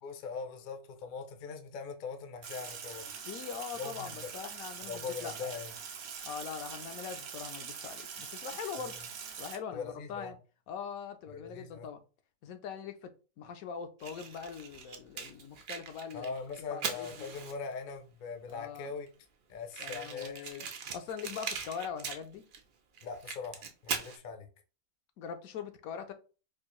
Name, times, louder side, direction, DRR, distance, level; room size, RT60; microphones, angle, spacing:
voice 1, 0.0-3.1 3.8-4.3 4.8-5.7 8.8-9.0 9.7-10.3 11.3-11.9 16.1-19.1 19.5-20.6 23.0-24.5, left 5 dB, 55° left, 0.6 m, -41 dB
Sink (filling or washing), 2.4-9.6, right 6 dB, 80° right, 1.2 m, -43 dB
voice 2, 3.3-5.5 6.2-9.0 9.4-10.4 10.7-12.0 12.4-16.3 16.7-17.3 18.5-18.9 19.8-20.7 20.9-22.4 25.2-26.1, left 7 dB, 75° left, 1.0 m, -42 dB
Fire, 14.0-17.8 18.5-18.6 18.8-18.9 19.1-19.2 19.7-22.6 22.9-24.2, right 6 dB, 65° right, 0.5 m, -40 dB
4.5 x 2.5 x 2.9 m
omnidirectional pair, 1.5 m